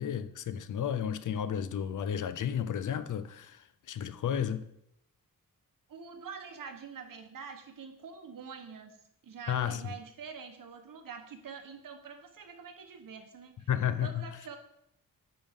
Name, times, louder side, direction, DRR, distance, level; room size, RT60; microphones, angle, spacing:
voice 1, 0.0-4.7 9.5-9.9 13.7-14.3, left 9 dB, 65° left, 0.5 m, -32 dB
voice 2, 5.9-9.0 9.2-13.7 14.0-14.6, right 6 dB, 75° right, 1.1 m, -45 dB
9.3 x 5.4 x 3.6 m
wide cardioid pair, 170°, 34 cm